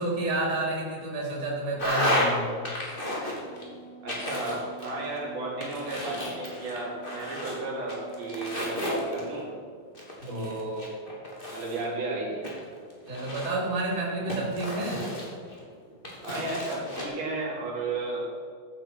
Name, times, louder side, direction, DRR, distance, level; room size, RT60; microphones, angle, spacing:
voice 1, 0.0-2.6 10.2-10.5 13.1-15.0, right 2 dB, 20° right, -4 dB, 3.8 m, -30 dB
sound 1, 1.8-2.3 2.6-3.6 4.1-5.2 5.6-7.6 7.9-9.4 9.9-11.9 12.4-13.7 14.3-15.6 16.0-17.0, left 1 dB, 15° left, 2.5 m, -32 dB
Wind instrument woodwind instrument, 3.4-9.6, right 5 dB, 65° left, 0.4 m, -47 dB
voice 2, 4.0-9.5 10.3-10.9 11.5-12.5 16.2-18.2, right 2 dB, 75° right, -4 dB, 4.8 m, -33 dB
15.0 x 8.9 x 6.1 m, 2.1 s
omnidirectional pair, 4.3 m